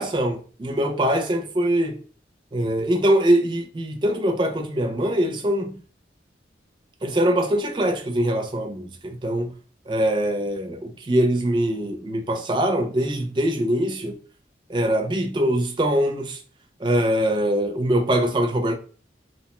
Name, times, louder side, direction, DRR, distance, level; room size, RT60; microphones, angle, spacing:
voice 1, 0.0-2.0 2.5-5.8 7.0-9.5 9.9-14.2 14.7-16.4 16.8-18.8, right 1 dB, 25° right, 0.4 m, -23 dB
2.7 x 2.1 x 2.8 m
head